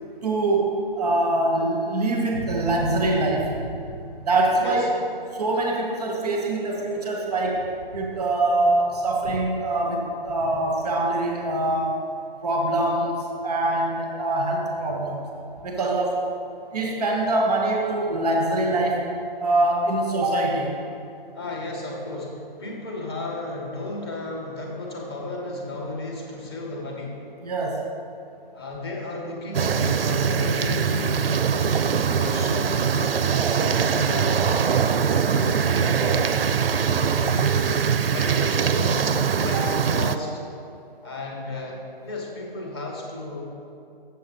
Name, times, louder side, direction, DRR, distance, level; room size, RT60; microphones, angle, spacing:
voice 1, 0.2-3.7 4.2-4.9 5.3-12.1 12.4-15.2 15.6-16.3 16.7-19.1 19.4-20.9 27.4-27.8 39.5-39.6, right 2 dB, ahead, -1 dB, 0.5 m, -24 dB
voice 2, 21.3-27.2 28.5-31.4 31.9-37.7 38.1-39.1 39.4-40.4 41.0-43.4, left 2 dB, 25° left, -1 dB, 1.1 m, -34 dB
sound 1, 29.5-40.2, right 6 dB, 80° right, 0.5 m, -22 dB
7.6 x 6.9 x 5.3 m, 2.7 s
hypercardioid pair, 160°, 29 cm